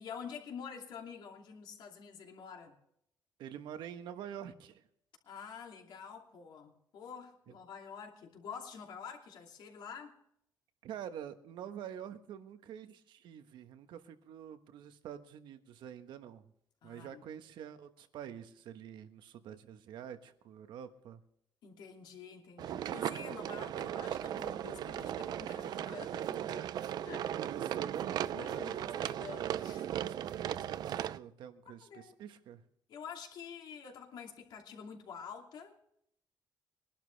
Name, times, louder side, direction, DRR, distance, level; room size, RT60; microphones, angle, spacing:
voice 1, 0.0-2.7 5.2-10.2 16.8-17.2 21.6-26.8 27.0-27.4 28.3-29.9 31.8-32.1 32.9-35.8, left 6 dB, 70° left, 2 dB, 2.8 m, -48 dB
voice 2, 3.4-4.9 7.5-7.6 10.8-16.5 16.8-21.2 27.3-28.3 30.0-32.6, right 9 dB, 85° right, 9 dB, 1.2 m, -47 dB
sound 1, 22.6-31.2, right 11 dB, 60° right, 0.4 m, -37 dB
22.5 x 11.5 x 3.4 m, 0.73 s
cardioid pair, 160°, 8 cm